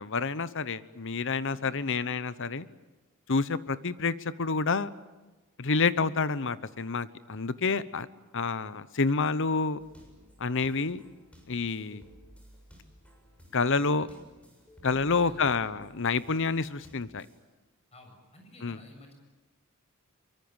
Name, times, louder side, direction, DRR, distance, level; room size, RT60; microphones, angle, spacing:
voice 1, 0.0-2.7 3.3-4.9 5.6-8.1 8.3-9.8 10.4-11.0 11.5-12.0 13.5-14.1 14.8-17.3 18.6-18.8, left 4 dB, 60° left, 15 dB, 1.0 m, -28 dB
sound 1, 9.8-17.4, equal, 5° left, 7.1 m, -56 dB
voice 2, 14.8-15.4 17.9-19.1, left 1 dB, 30° left, 4 dB, 7.3 m, -53 dB
24.5 x 23.5 x 9.0 m, 1.2 s
head